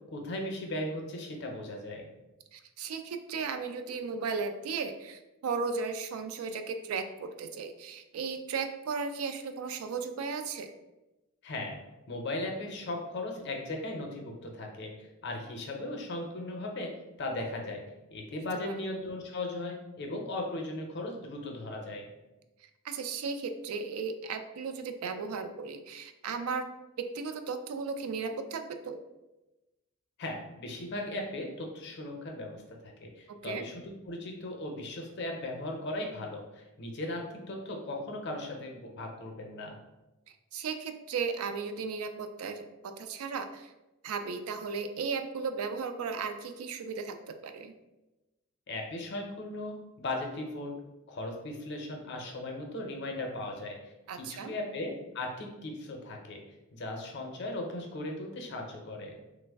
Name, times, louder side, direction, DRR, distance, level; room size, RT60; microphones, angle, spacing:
voice 1, 0.1-2.1 11.4-11.7 12.1-16.9 17.2-17.8 18.1-22.1 30.2-39.8 48.7-50.7 51.1-56.4 56.7-59.2, left 2 dB, 55° left, 2 dB, 0.5 m, -37 dB
voice 2, 2.5-10.7 18.6-18.8 22.8-26.7 27.0-29.0 33.3-33.6 40.5-42.7 43.0-43.7 44.0-47.7 54.1-54.5, right 5 dB, 85° right, 8 dB, 0.3 m, -35 dB
3.2 x 2.0 x 3.4 m, 1.0 s
head